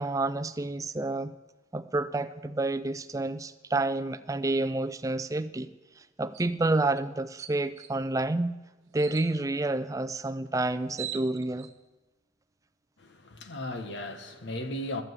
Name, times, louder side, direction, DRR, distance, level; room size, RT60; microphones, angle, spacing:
voice 1, 0.0-1.3 1.7-5.7 6.0-8.6 8.9-11.7, right 2 dB, 15° right, 0.4 m, -29 dB
sound 1, 6.3-6.5 7.0-7.1 7.4-7.9 9.0-9.3 10.5-10.6 10.7-11.7, right 10 dB, 75° right, 1.2 m, -40 dB
voice 2, 13.0-15.0, left 1 dB, 60° left, 1.2 m, -36 dB
14.0 x 7.5 x 7.9 m
head